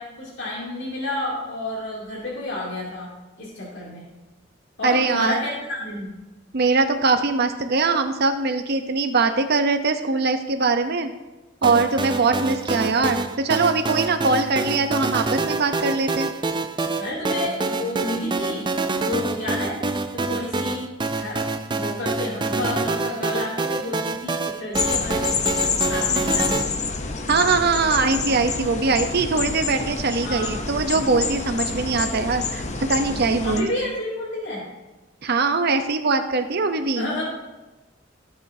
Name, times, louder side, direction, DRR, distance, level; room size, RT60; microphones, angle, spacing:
voice 1, 0.0-3.1 3.4-4.1 4.8-6.1 17.0-18.7 19.0-19.8 20.1-20.8 21.1-25.2 25.9-26.5 30.2-30.6 33.4-34.7 37.0-37.2, left 2 dB, 65° left, -5 dB, 2.8 m, -30 dB
voice 2, 4.8-5.4 6.5-11.1 11.6-16.3 27.3-33.7 35.2-37.1, right 4 dB, 55° right, 7 dB, 0.8 m, -22 dB
sound 1, 11.6-26.6, right 3 dB, 25° right, 0.5 m, -26 dB
sound 2, 24.7-33.6, left 5 dB, 35° left, 0.7 m, -27 dB
15.0 x 7.1 x 2.7 m, 1.1 s
head